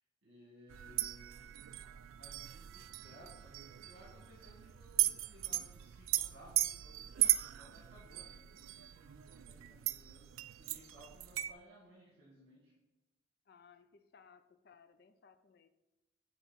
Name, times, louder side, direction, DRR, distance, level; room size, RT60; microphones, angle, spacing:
voice 1, 0.2-1.6 2.1-12.7, equal, 65° right, -5 dB, 1.8 m, -60 dB
sound 1, 0.7-11.5, right 15 dB, 85° right, 0.3 m, -37 dB
voice 2, 13.5-15.7, left 6 dB, 50° left, 11 dB, 0.4 m, -62 dB
8.0 x 3.0 x 5.7 m, 0.98 s
head